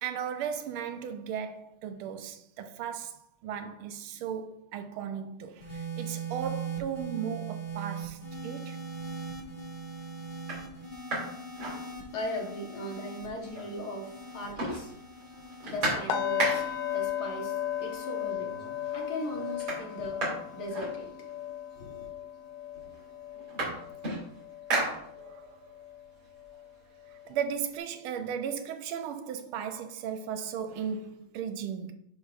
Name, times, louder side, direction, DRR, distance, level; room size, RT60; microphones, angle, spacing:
voice 1, 0.0-8.8 25.2-25.7 27.3-31.9, right 8 dB, 80° right, 1.5 m, -36 dB
sound 1, 5.6-22.1 23.0-23.3, right 4 dB, 25° left, 1.2 m, -42 dB
sound 2, 9.0-9.4 9.9-10.0 10.3-12.4 12.8-12.9 13.1-13.9 14.2-16.9 17.9-18.0 18.4-18.9 19.1-21.5 22.3-22.4 22.7-25.6 26.0-27.7, right 2 dB, 60° right, 3.1 m, -35 dB
voice 2, 12.1-14.9 15.6-18.6 18.9-20.2 20.5-21.1 21.7-22.0, left 1 dB, 55° left, 1.6 m, -38 dB
sound 3, 16.1-26.0 26.4-26.6 27.1-27.2, left 10 dB, 80° left, 1.5 m, -36 dB
10.5 x 4.1 x 2.4 m
omnidirectional pair, 2.4 m